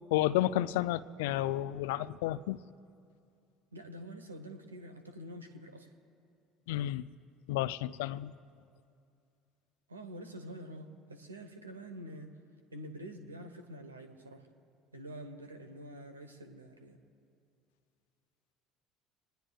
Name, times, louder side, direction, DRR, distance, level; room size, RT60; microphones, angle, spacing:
voice 1, 0.1-2.6 6.7-7.0 7.5-8.3, left 14 dB, 65° left, 18 dB, 0.4 m, -31 dB
voice 2, 3.7-5.9 9.9-12.3 12.7-14.5 14.9-17.0, right 1 dB, 85° right, 8 dB, 1.1 m, -47 dB
26.5 x 19.5 x 2.4 m, 2.4 s
figure-of-eight pair, 60°, 0 cm